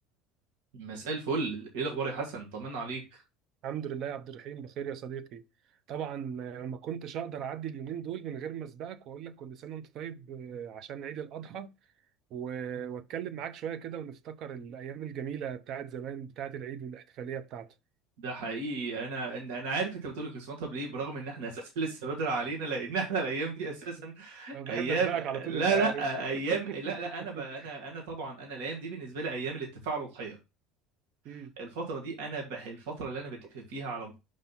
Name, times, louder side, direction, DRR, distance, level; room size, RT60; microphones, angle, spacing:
voice 1, 0.7-3.2 18.2-30.4 31.3-34.1, right 4 dB, 75° right, 2.1 m, -34 dB
voice 2, 3.6-5.4 5.9-11.7 12.3-17.7 24.5-26.0 26.3-27.7 31.2-31.5, right 8 dB, 55° right, 0.8 m, -38 dB
5.7 x 5.0 x 4.0 m
hypercardioid pair, 80°, 0 cm